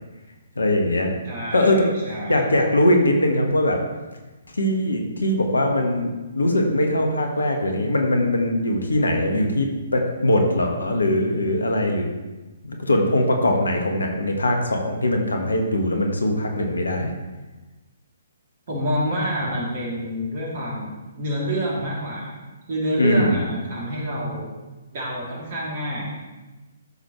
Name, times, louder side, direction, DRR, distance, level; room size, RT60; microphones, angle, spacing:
voice 1, 0.6-1.2 1.5-1.9 2.3-3.8 4.6-9.7 9.9-12.1 12.7-17.1 23.0-23.4, left 1 dB, 70° left, 3 dB, 1.4 m, -21 dB
voice 2, 1.2-2.5 18.7-20.9 21.2-22.3 22.7-24.5 24.9-26.1, equal, 45° right, -4 dB, 3.1 m, -27 dB
13.5 x 6.3 x 3.2 m, 1.2 s
figure-of-eight pair, 130°, 0 cm